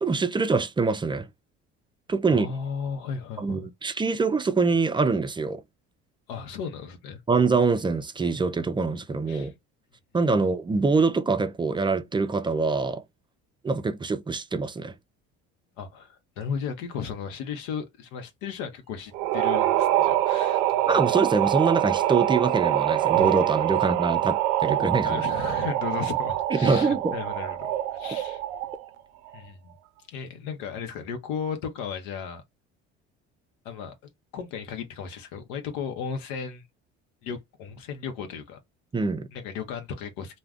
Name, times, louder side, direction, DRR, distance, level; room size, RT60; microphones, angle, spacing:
voice 1, 0.0-1.3 2.1-2.5 3.4-5.6 7.3-9.5 10.1-13.0 13.6-14.9 20.9-25.2 26.5-27.1 38.9-39.3, right 4 dB, 15° right, 0.4 m, -24 dB
voice 2, 2.3-3.6 6.3-7.2 9.3-9.5 15.8-20.6 25.0-28.4 29.3-29.7 30.1-32.4 33.6-33.9 34.3-36.6 37.2-38.6 39.3-40.4, left 6 dB, 80° left, 0.7 m, -35 dB
sound 1, 19.1-28.9, right 13 dB, 85° right, 0.5 m, -25 dB
2.3 x 2.2 x 3.4 m
supercardioid pair, 80°, 32 cm